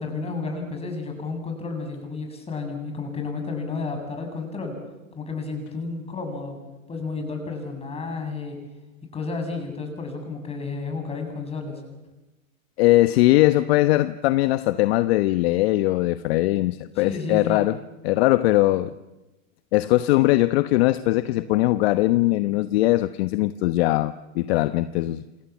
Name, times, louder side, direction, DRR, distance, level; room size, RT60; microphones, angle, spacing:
voice 1, 0.0-4.8 5.1-6.6 6.9-8.6 9.1-11.8 17.0-17.6, left 4 dB, 15° left, 7.9 m, -31 dB
voice 2, 12.8-17.8 18.0-18.9 19.7-25.2, left 17 dB, 50° left, 1.0 m, -20 dB
28.0 x 27.5 x 7.4 m
hypercardioid pair, 125°, 40 cm